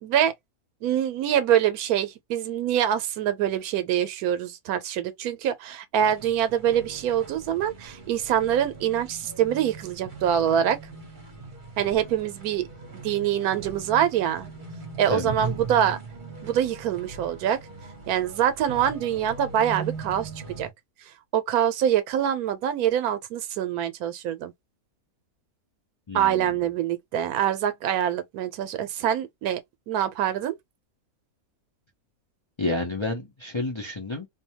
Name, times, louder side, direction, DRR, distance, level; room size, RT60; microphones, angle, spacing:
voice 1, 0.0-0.3 0.8-10.8 11.8-12.7 12.9-14.5 15.0-16.0 16.4-17.6 18.1-20.7 21.3-24.5 26.1-29.6 29.9-30.6, right 10 dB, 85° right, 1.1 m, -25 dB
sound 1, 6.0-20.7, right 4 dB, 40° right, 1.0 m, -40 dB
voice 2, 26.1-26.5 32.6-34.3, left 2 dB, 35° left, 0.5 m, -30 dB
2.6 x 2.2 x 2.8 m
omnidirectional pair, 1.5 m